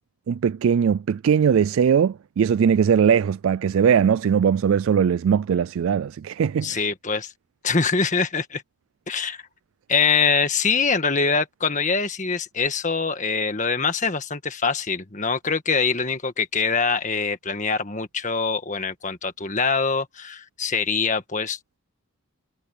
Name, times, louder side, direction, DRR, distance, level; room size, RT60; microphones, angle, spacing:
voice 1, 0.3-6.8, right 7 dB, 65° right, 0.3 m, -20 dB
voice 2, 6.6-7.3 7.6-8.6 9.1-9.4 9.9-21.8, left 5 dB, 35° left, 1.6 m, -24 dB
head